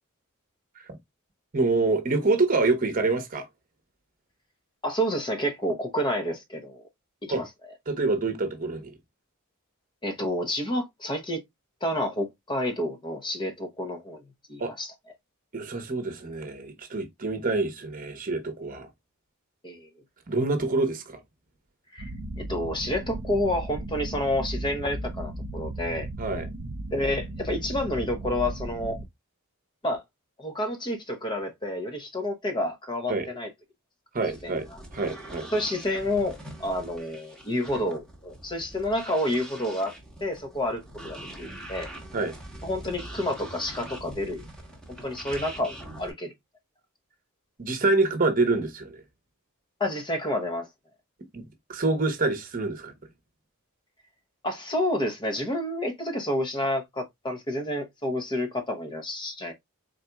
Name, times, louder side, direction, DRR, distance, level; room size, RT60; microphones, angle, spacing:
voice 1, 1.5-3.4 7.3-7.4 7.9-8.9 14.6-14.7 15.5-18.9 20.3-21.2 26.2-26.5 33.1-33.3 34.1-34.7 34.9-35.5 42.1-42.3 47.6-49.0 51.3-52.9, right 3 dB, 40° right, 0.9 m, -26 dB
voice 2, 4.8-6.8 7.2-7.5 10.0-11.4 11.8-14.2 14.5-14.9 19.6-19.9 21.9-22.1 22.4-26.1 26.9-29.0 29.8-30.0 30.4-33.5 34.4-34.6 35.5-39.9 40.2-41.9 42.6-44.5 45.0-46.3 49.8-50.7 54.4-59.5, left 1 dB, 20° left, 0.8 m, -29 dB
sound 1, 22.0-29.1, right 1 dB, 75° right, 0.7 m, -36 dB
sound 2, 34.2-46.1, right 1 dB, 5° left, 1.2 m, -43 dB
4.3 x 3.9 x 2.2 m
head